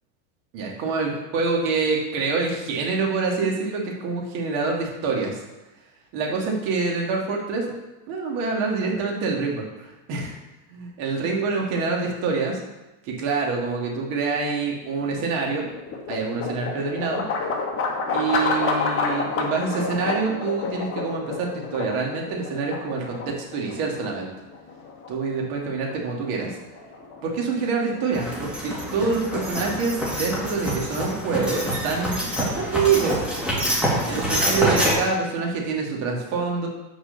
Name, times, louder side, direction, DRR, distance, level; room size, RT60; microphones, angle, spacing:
voice 1, 0.5-5.4 6.1-7.7 8.1-10.3 10.8-12.6 13.0-15.7 16.1-17.2 18.1-24.3 25.1-26.5 27.2-33.2 34.1-36.7, right 4 dB, 55° right, -1 dB, 2.4 m, -26 dB
sound 1, 14.8-28.9, left 4 dB, 30° left, 1.2 m, -30 dB
sound 2, 28.1-34.9, equal, ahead, 2.4 m, -26 dB
6.7 x 4.8 x 6.7 m, 1.0 s
supercardioid pair, 135°, 45 cm